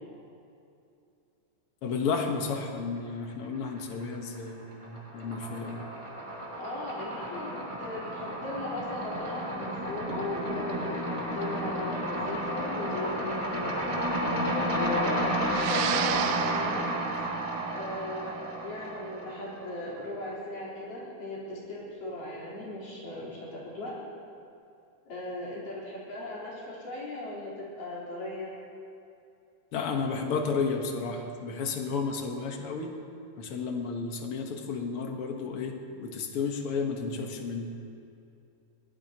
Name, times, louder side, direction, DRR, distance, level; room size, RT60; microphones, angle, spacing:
voice 1, 1.8-5.9 29.7-32.9 33.4-37.7, left 5 dB, 55° left, 3 dB, 1.8 m, -32 dB
sound 1, 3.4-4.2 4.5-19.6, equal, 15° right, 1.4 m, -32 dB
voice 2, 6.6-16.9 17.7-18.4 18.6-23.9 25.1-28.5, left 2 dB, 85° left, -7 dB, 5.6 m, -38 dB
sound 2, 15.5-24.0, right 12 dB, 80° right, 1.8 m, -36 dB
22.0 x 18.0 x 2.9 m, 2.6 s
omnidirectional pair, 3.7 m